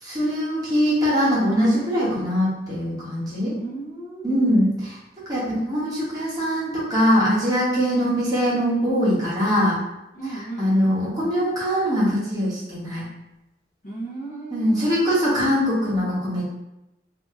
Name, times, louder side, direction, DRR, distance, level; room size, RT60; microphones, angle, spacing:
voice 1, 0.0-3.6 4.2-9.8 10.6-13.1 14.5-16.5, equal, 20° right, -9 dB, 1.0 m, -22 dB
voice 2, 3.5-4.5 7.9-8.2 10.1-11.0 13.8-15.2, right 3 dB, 40° left, -8 dB, 1.0 m, -35 dB
2.8 x 2.7 x 3.6 m, 0.91 s
head